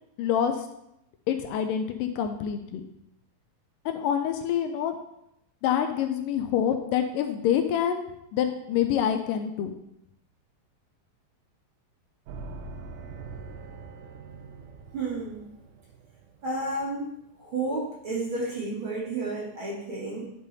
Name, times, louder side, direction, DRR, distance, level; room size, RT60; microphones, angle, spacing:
voice 1, 0.2-0.7 1.3-2.8 3.9-5.0 5.6-8.1 8.3-9.7, left 9 dB, 80° left, 6 dB, 2.2 m, -26 dB
sound 1, 12.3-17.0, right 4 dB, 75° right, 2.1 m, -43 dB
voice 2, 14.9-15.5 16.4-17.1 17.4-20.3, right 2 dB, 45° right, -5 dB, 2.2 m, -31 dB
10.5 x 5.4 x 4.1 m, 0.81 s
omnidirectional pair, 4.0 m